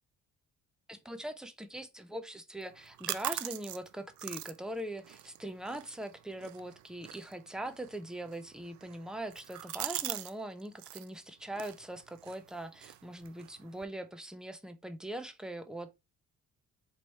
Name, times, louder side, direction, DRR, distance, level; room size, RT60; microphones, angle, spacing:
voice 1, 0.9-15.9, right 1 dB, ahead, 0.6 m, -41 dB
sound 1, 2.6-10.3 10.6-11.1 11.5-13.8, right 14 dB, 70° right, 0.4 m, -43 dB
3.2 x 3.0 x 4.1 m
cardioid pair, 90°, 30 cm